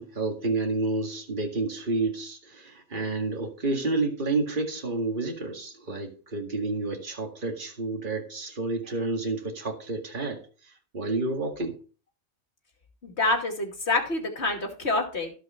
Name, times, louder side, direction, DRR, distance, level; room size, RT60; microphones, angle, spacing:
voice 1, 0.0-10.4 10.9-11.8, right 3 dB, 35° right, 2.2 m, -30 dB
voice 2, 13.0-15.3, left 2 dB, 50° left, 2.7 m, -27 dB
16.0 x 5.6 x 4.4 m
omnidirectional pair, 1.4 m